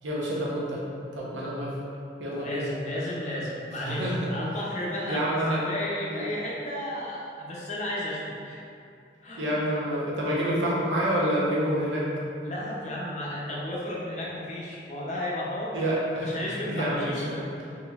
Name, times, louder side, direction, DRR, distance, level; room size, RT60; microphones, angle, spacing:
voice 1, 0.0-0.8 1.1-1.7 2.2-2.7 3.8-4.2 5.1-5.6 6.1-6.3 9.4-12.1 15.7-16.4 16.7-17.5, equal, 85° right, -6 dB, 0.8 m, -28 dB
voice 2, 2.3-8.6 9.2-9.5 12.4-15.8 16.2-17.4, left 1 dB, 40° left, -5 dB, 0.5 m, -33 dB
3.9 x 2.9 x 2.3 m, 2.5 s
head